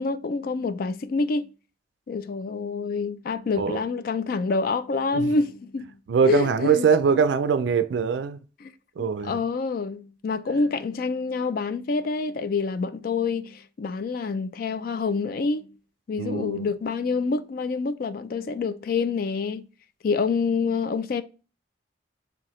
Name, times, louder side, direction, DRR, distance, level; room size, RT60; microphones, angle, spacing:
voice 1, 0.0-1.5 2.1-5.9 6.2-6.9 8.6-8.7 9.0-15.7 16.1-19.6 20.0-21.2, left 4 dB, 50° left, 0.3 m, -27 dB
voice 2, 6.1-8.4 9.0-9.4 16.2-16.7, right 6 dB, 75° right, 0.3 m, -22 dB
4.6 x 3.4 x 3.1 m
head